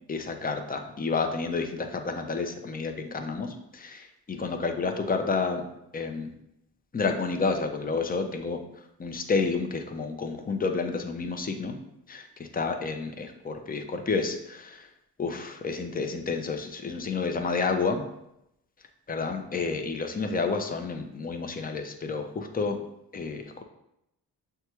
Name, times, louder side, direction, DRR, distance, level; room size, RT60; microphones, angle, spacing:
voice 1, 0.1-5.6 5.9-6.3 6.9-8.6 9.0-11.8 12.1-14.9 15.2-18.0 19.1-22.8 23.1-23.4, left 4 dB, 20° left, 5 dB, 0.6 m, -30 dB
6.3 x 2.3 x 3.0 m, 0.83 s
supercardioid pair, 55°, 39 cm